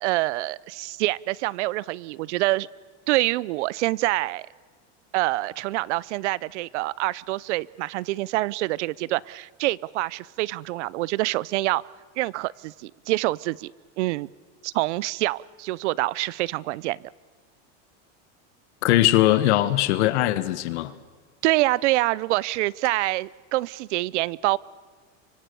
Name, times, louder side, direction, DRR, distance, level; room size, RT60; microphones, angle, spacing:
voice 1, 0.0-2.7 3.1-4.5 5.1-11.8 12.2-13.7 14.0-14.3 14.6-17.0 21.4-24.6, right 19 dB, 75° right, 24 dB, 0.6 m, -26 dB
voice 2, 18.8-20.9, left 15 dB, 70° left, 14 dB, 1.5 m, -20 dB
25.0 x 25.0 x 6.9 m, 1.5 s
supercardioid pair, 175°, 36 cm